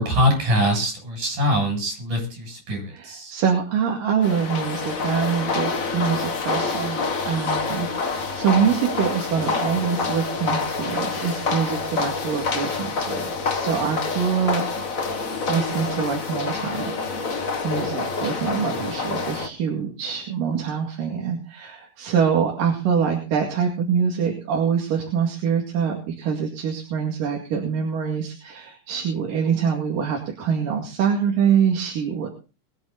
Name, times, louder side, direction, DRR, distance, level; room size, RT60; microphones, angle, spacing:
voice 1, 0.0-3.3, equal, 75° right, 3 dB, 9.4 m, -23 dB
voice 2, 2.9-14.6 15.5-32.3, right 7 dB, 90° right, 1 dB, 3.9 m, -25 dB
sound 1, 4.2-19.5, left 4 dB, 35° left, 1.3 m, -27 dB
22.5 x 9.7 x 4.1 m, 0.35 s
omnidirectional pair, 3.7 m